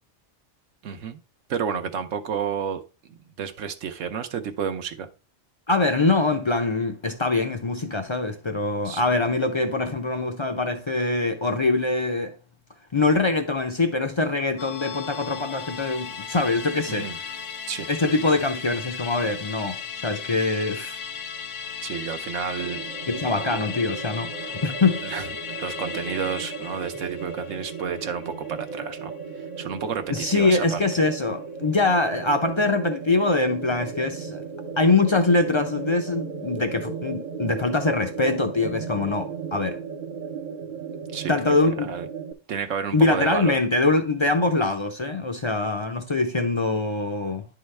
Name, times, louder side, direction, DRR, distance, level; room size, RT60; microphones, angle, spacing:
voice 1, 0.8-1.2 1.5-2.8 3.4-5.1 8.8-9.1 16.9-17.2 17.7-17.9 21.8-22.9 25.1-25.3 25.5-29.1 29.6-30.8 41.1-41.6 41.8-42.1 42.5-43.6, right 7 dB, 75° right, 1.1 m, -30 dB
voice 2, 5.7-12.4 12.9-17.2 17.9-21.0 23.1-25.0 30.1-34.4 34.8-39.8 41.3-41.9 42.9-47.4, left 3 dB, 40° left, 0.4 m, -23 dB
Musical instrument, 14.6-29.3 29.6-29.7, left 7 dB, 75° left, 1.0 m, -36 dB
sound 1, 22.6-42.3, right 5 dB, 45° right, 0.7 m, -36 dB
10.5 x 3.9 x 3.2 m
omnidirectional pair, 1.3 m